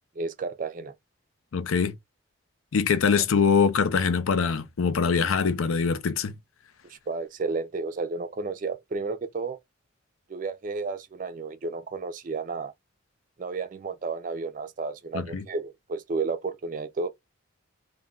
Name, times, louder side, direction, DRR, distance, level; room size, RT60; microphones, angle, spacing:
voice 1, 0.2-0.9 6.9-9.6 10.3-12.7 13.4-17.1, right 4 dB, 40° right, 0.3 m, -32 dB
voice 2, 1.5-1.9 2.7-6.3 15.1-15.4, left 5 dB, 90° left, 0.5 m, -23 dB
2.3 x 2.1 x 3.4 m
head